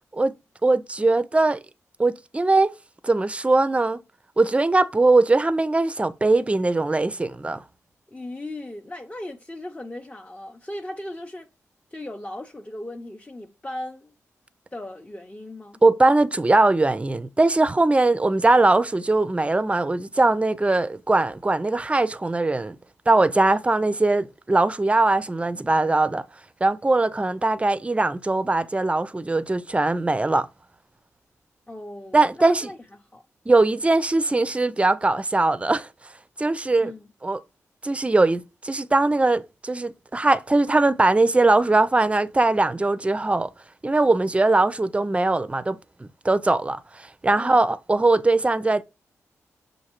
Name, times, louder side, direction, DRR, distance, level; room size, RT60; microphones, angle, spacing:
voice 1, 0.6-1.6 2.0-2.7 3.0-4.0 4.4-7.6 15.8-22.8 23.1-26.2 26.6-30.5 32.1-32.7 33.5-35.9 36.4-36.9 37.2-37.4 37.8-43.5 43.8-48.8, right 2 dB, 20° right, 0.4 m, -21 dB
voice 2, 8.1-11.5 11.9-14.1 14.7-15.8 31.7-33.2 36.8-37.1 47.4-47.6, left 1 dB, 20° left, 0.6 m, -37 dB
6.2 x 2.7 x 2.9 m
supercardioid pair, 50°, 6 cm